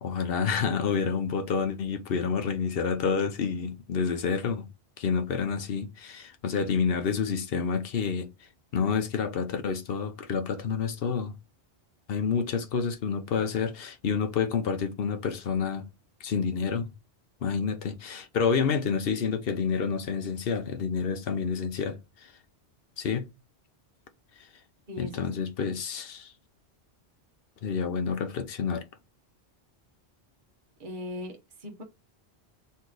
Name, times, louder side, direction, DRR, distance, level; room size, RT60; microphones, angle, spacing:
voice 1, 0.0-4.7 5.0-8.3 8.7-11.4 12.1-15.9 16.2-16.9 17.4-22.3 23.0-23.3 25.0-26.3 27.6-28.8, left 6 dB, 65° left, 0.9 m, -29 dB
voice 2, 24.9-25.3 30.8-31.8, left 1 dB, 50° right, 1.2 m, -39 dB
4.2 x 3.1 x 3.8 m
omnidirectional pair, 1.1 m